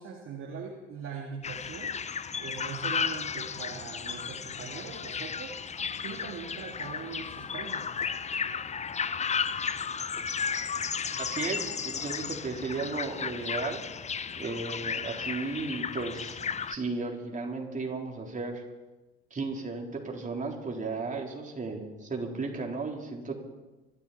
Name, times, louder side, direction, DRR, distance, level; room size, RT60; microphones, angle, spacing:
voice 1, 0.0-1.9 2.4-5.6 6.0-7.9, right 6 dB, 40° right, 0 dB, 2.4 m, -41 dB
sound 1, 1.4-16.8, left 6 dB, 20° left, 0.7 m, -34 dB
voice 2, 11.2-13.8 14.4-16.4 16.7-18.6 19.3-23.4, right 3 dB, 25° right, 0 dB, 4.1 m, -35 dB
25.0 x 13.0 x 4.4 m, 1.1 s
hypercardioid pair, 70°, 32 cm